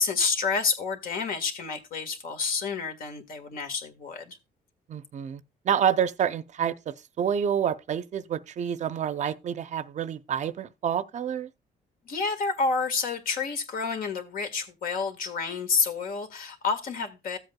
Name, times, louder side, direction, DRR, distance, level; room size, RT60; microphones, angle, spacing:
voice 1, 0.0-4.4 12.0-17.4, left 5 dB, 60° left, 1.7 m, -29 dB
voice 2, 4.9-11.5, right 8 dB, 45° right, 0.6 m, -28 dB
14.5 x 7.9 x 2.3 m
cardioid pair, 135°, 16 cm